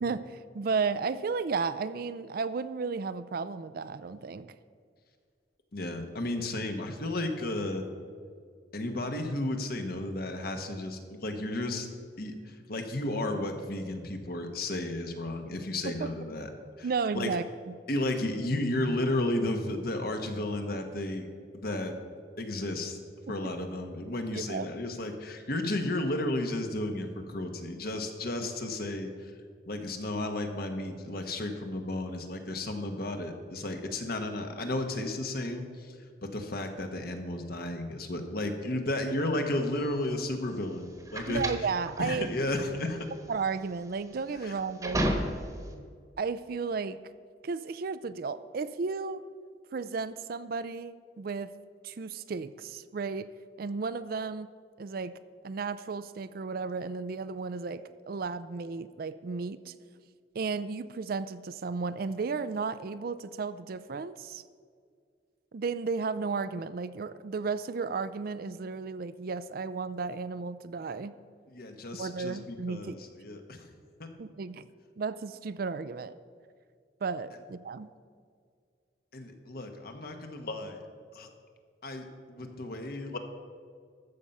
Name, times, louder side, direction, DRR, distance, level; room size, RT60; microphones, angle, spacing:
voice 1, 0.0-4.6 15.9-16.1 16.8-17.7 24.3-24.7 28.4-28.5 41.3-42.3 43.3-45.1 46.2-47.0 47.4-49.2 49.7-51.5 51.8-53.3 53.6-54.5 54.8-55.1 55.4-59.7 60.3-64.4 65.5-71.1 72.0-72.9 74.2-74.7 75.0-76.1 77.0-77.9, right 4 dB, 55° right, 14 dB, 0.4 m, -34 dB
voice 2, 5.7-7.8 8.7-11.9 12.2-16.5 16.8-16.9 17.1-17.3 17.9-21.3 21.5-21.9 22.4-23.0 23.3-29.3 29.6-36.0 36.3-41.4 42.0-43.1 44.4-44.5 71.5-73.7 79.1-80.8 81.1-81.3 81.8-83.2, left 1 dB, 55° left, 5 dB, 1.2 m, -33 dB
sound 1, 39.7-45.7, right 1 dB, 20° right, 1.2 m, -34 dB
13.5 x 7.2 x 5.4 m, 2.1 s
head